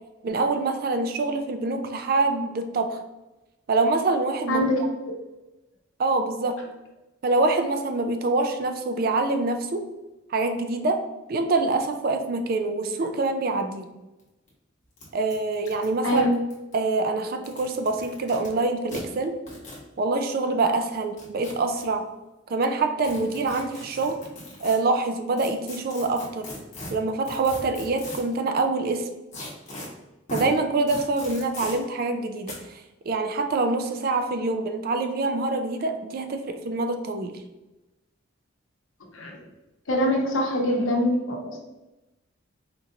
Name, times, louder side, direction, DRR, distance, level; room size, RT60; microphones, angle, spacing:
voice 1, 0.2-3.0 3.7-4.6 6.0-6.6 7.2-9.8 10.3-11.0 11.3-13.9 15.1-16.2 16.7-19.4 20.0-22.0 22.5-24.2 24.6-26.5 26.9-29.1 30.3-37.3, right 3 dB, 45° right, 7 dB, 0.3 m, -25 dB
voice 2, 4.5-4.8 16.0-16.3 39.1-39.4 39.9-41.6, equal, 70° left, 0 dB, 0.8 m, -24 dB
sound 1, 14.2-14.3 14.5-14.6 15.0-15.1 15.3-16.7 17.3-18.5 18.9-19.0 19.5-19.8 20.9-21.8 23.0-24.8 25.4-28.3 29.3-29.9 30.3-30.5 30.9-31.7 32.5-32.6, left 1 dB, 35° left, 1.0 m, -39 dB
4.4 x 2.5 x 2.7 m, 1.0 s
head